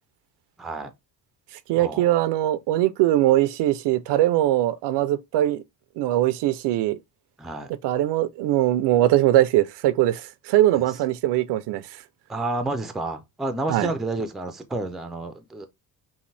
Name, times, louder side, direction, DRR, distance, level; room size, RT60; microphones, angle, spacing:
voice 1, 0.6-0.9 1.8-2.0 7.4-7.7 10.7-10.8 12.3-15.7, right 2 dB, ahead, 0.3 m, -30 dB
voice 2, 1.7-5.6 6.0-7.0 7.8-11.8 13.7-13.9, right 14 dB, 90° right, 0.6 m, -21 dB
5.6 x 2.5 x 3.3 m
cardioid pair, 165°, 41 cm